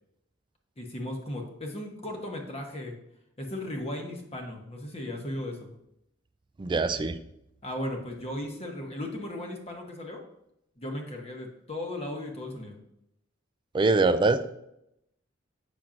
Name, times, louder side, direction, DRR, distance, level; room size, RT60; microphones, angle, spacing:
voice 1, 0.8-2.9 3.4-5.7 7.6-10.2 10.8-12.8, left 1 dB, 35° left, 2 dB, 1.0 m, -36 dB
voice 2, 6.6-7.2 13.7-14.4, right 3 dB, 25° right, 12 dB, 0.3 m, -23 dB
7.1 x 6.0 x 2.5 m, 0.79 s
head